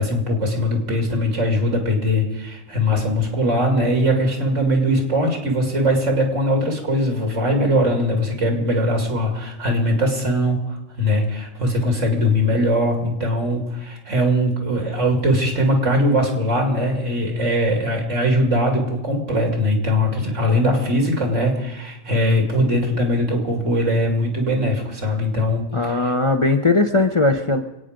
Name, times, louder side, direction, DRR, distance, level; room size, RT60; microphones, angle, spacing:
voice 1, 0.0-25.7 26.0-26.1, equal, 70° right, 3 dB, 3.0 m, -21 dB
voice 2, 25.7-27.6, left 3 dB, 30° left, 4 dB, 0.7 m, -18 dB
26.0 x 9.1 x 5.1 m, 0.93 s
omnidirectional pair, 1.3 m